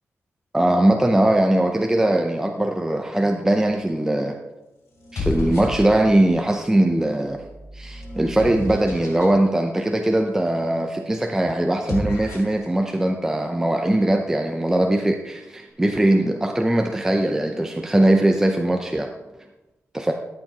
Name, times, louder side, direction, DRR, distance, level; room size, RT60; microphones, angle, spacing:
voice 1, 0.5-4.4 5.1-7.4 7.7-19.1 19.9-20.1, right 1 dB, 10° right, 4 dB, 0.6 m, -20 dB
sound 1, 3.7-4.1 4.9-6.3 7.0-9.3 11.7-12.6, left 2 dB, 80° left, 2.8 m, -32 dB
13.5 x 8.1 x 2.9 m, 1.0 s
wide cardioid pair, 130°, 5 cm